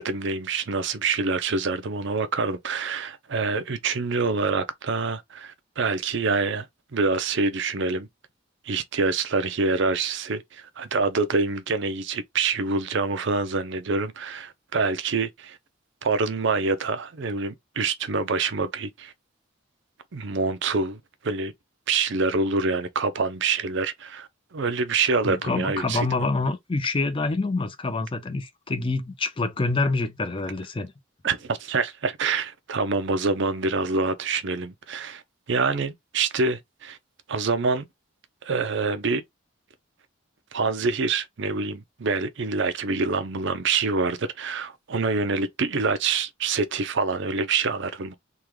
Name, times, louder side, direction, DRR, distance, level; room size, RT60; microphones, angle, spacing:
voice 1, 0.0-6.7 6.9-8.1 8.7-15.6 16.0-19.1 20.1-21.5 21.9-26.1 31.2-35.2 35.5-37.0 37.3-37.8 38.4-39.2 40.5-48.2, right 4 dB, 60° right, 0.6 m, -26 dB
voice 2, 25.2-30.9, left 3 dB, 25° left, 0.4 m, -26 dB
3.6 x 2.2 x 3.1 m
head